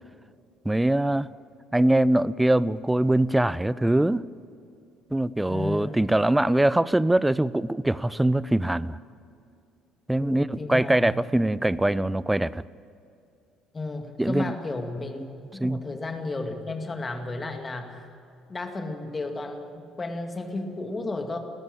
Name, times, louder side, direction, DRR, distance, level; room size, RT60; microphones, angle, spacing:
voice 1, 0.6-1.3 1.7-4.2 5.1-9.0 10.1-12.6 14.2-14.5 15.6-15.8, right 1 dB, 10° right, 20 dB, 0.5 m, -23 dB
voice 2, 5.4-6.0 10.2-11.1 13.7-15.3 15.5-18.1 18.5-21.4, left 2 dB, 25° left, 5 dB, 2.3 m, -33 dB
21.0 x 14.0 x 8.9 m, 2.6 s
figure-of-eight pair, 50°, 0 cm